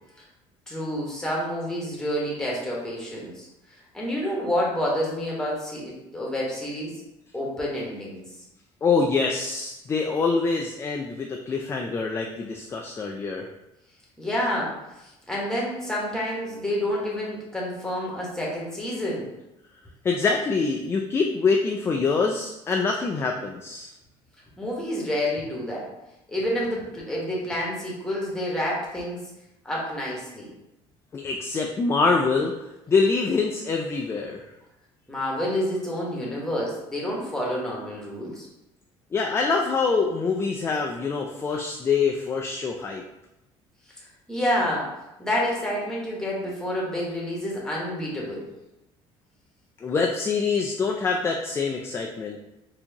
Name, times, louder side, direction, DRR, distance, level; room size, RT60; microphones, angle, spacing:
voice 1, 0.7-3.5 3.9-7.0 7.3-8.2 14.2-19.3 24.6-25.9 26.3-29.2 29.6-30.5 35.1-38.5 44.3-44.9 45.2-48.5, equal, 5° left, -4 dB, 1.2 m, -28 dB
voice 2, 8.8-13.5 20.0-23.9 31.1-32.5 32.9-34.4 39.1-43.0 49.8-52.5, left 4 dB, 20° left, 2 dB, 0.3 m, -25 dB
4.3 x 2.8 x 2.8 m, 0.91 s
cardioid pair, 130°, 11 cm